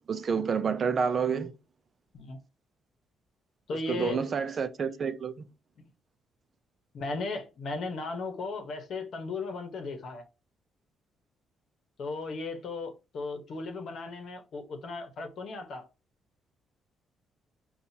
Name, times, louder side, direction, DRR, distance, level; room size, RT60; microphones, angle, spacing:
voice 1, 0.1-1.5 3.9-5.4, right 6 dB, 45° right, 0.5 m, -29 dB
voice 2, 3.7-4.2 6.9-10.3 12.0-15.9, left 3 dB, 60° left, 0.9 m, -36 dB
5.5 x 2.4 x 2.7 m
cardioid pair, 90°, 0 cm